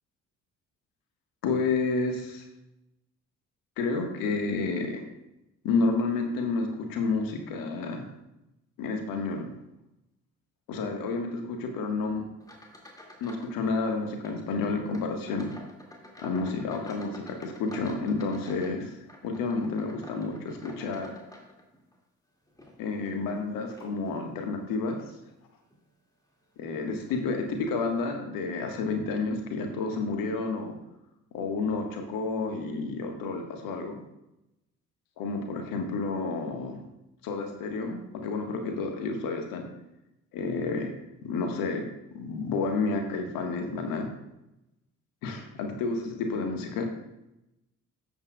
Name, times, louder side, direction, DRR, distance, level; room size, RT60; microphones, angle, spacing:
voice 1, 1.4-2.4 3.8-5.0 5.6-8.0 8.8-9.5 10.7-12.2 13.2-15.5 16.2-18.9 19.2-21.1 22.8-25.0 26.6-30.8 31.3-34.0 35.2-36.8 37.2-39.7 40.3-40.9 41.2-41.8 42.1-44.1 45.2-46.9, left 3 dB, 60° left, 4 dB, 1.6 m, -30 dB
sound 1, 12.4-13.6 13.8-14.4 14.9-22.0 22.5-24.3 24.9-25.2 25.7-25.8 26.7-26.8 27.1-27.3, left 1 dB, 10° left, 2.3 m, -49 dB
12.5 x 8.3 x 2.4 m, 0.89 s
figure-of-eight pair, 45°, 38 cm